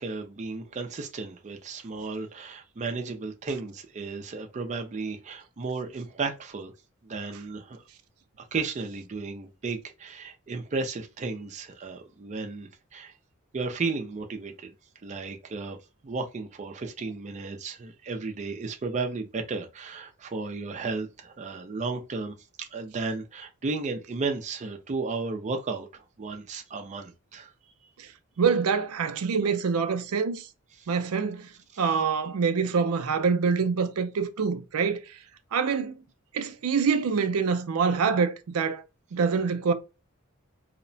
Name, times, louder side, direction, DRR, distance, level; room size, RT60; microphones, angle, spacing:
voice 1, 0.0-6.7 7.0-7.8 8.4-13.1 13.5-14.7 15.0-15.8 16.0-27.5 30.8-30.9, right 4 dB, 35° right, 0.4 m, -34 dB
voice 2, 28.4-30.5 30.9-31.5 31.8-35.0 35.5-36.0 36.3-38.8 39.1-39.7, right 5 dB, 85° right, 0.5 m, -25 dB
2.8 x 2.1 x 2.6 m
head